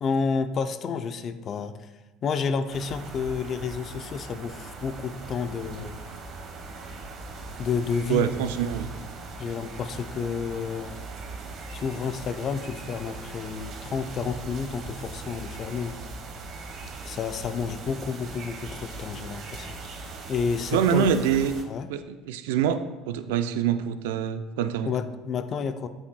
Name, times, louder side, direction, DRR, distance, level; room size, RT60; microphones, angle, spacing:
voice 1, 0.0-1.7 2.2-6.0 7.6-8.2 9.4-11.0 11.7-15.9 17.0-19.7 20.3-21.1 21.7-21.9 24.8-25.9, left 5 dB, 45° left, 10 dB, 0.6 m, -30 dB
sound 1, 2.7-21.6, right 3 dB, 55° right, 1.2 m, -40 dB
voice 2, 8.1-9.0 20.7-21.5 21.9-22.8 23.1-24.9, right 8 dB, 80° right, 10 dB, 0.4 m, -25 dB
8.3 x 7.2 x 2.3 m, 1.1 s
hypercardioid pair, 80°, 0 cm